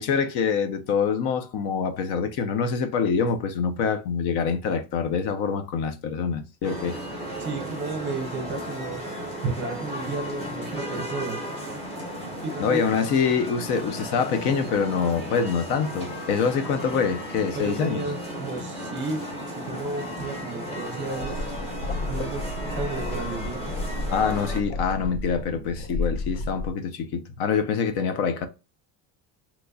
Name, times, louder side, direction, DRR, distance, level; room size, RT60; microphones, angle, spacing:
voice 1, 0.0-7.0 12.6-18.0 24.1-28.5, left 6 dB, 60° left, 0.7 m, -25 dB
sound 1, 6.6-24.6, equal, 15° left, 0.8 m, -35 dB
voice 2, 7.4-9.0 9.4-11.4 12.4-12.8 17.5-21.4 22.0-23.7, right 3 dB, 25° right, 0.6 m, -33 dB
sound 2, 21.1-26.7, left 2 dB, 90° left, 1.0 m, -32 dB
3.9 x 3.0 x 2.2 m
cardioid pair, 175°, 44 cm